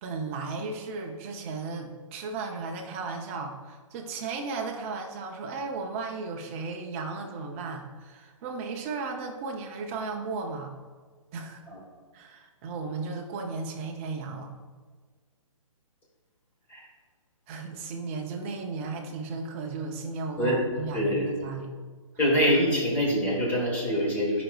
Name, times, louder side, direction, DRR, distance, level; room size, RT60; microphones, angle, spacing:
voice 1, 0.0-10.7 11.3-11.6 12.1-14.5 17.5-21.7, right 4 dB, 25° right, 2 dB, 0.6 m, -35 dB
voice 2, 20.9-21.4 22.2-24.4, equal, 10° left, -3 dB, 1.3 m, -25 dB
10.5 x 5.1 x 2.3 m, 1.5 s
hypercardioid pair, 155°, 17 cm